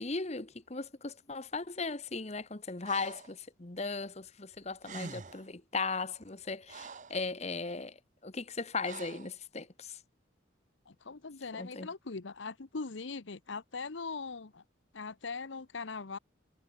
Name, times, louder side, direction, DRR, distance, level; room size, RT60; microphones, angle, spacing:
voice 1, 0.0-10.0 11.6-11.9, left 4 dB, 35° left, 1.2 m, -37 dB
Breathing, 2.8-3.4 4.5-4.6 4.8-5.5 6.2-7.2 8.8-9.3, right 4 dB, 40° right, 0.7 m, -46 dB
voice 2, 10.9-14.6 14.9-16.2, left 4 dB, 75° left, 0.9 m, -41 dB
head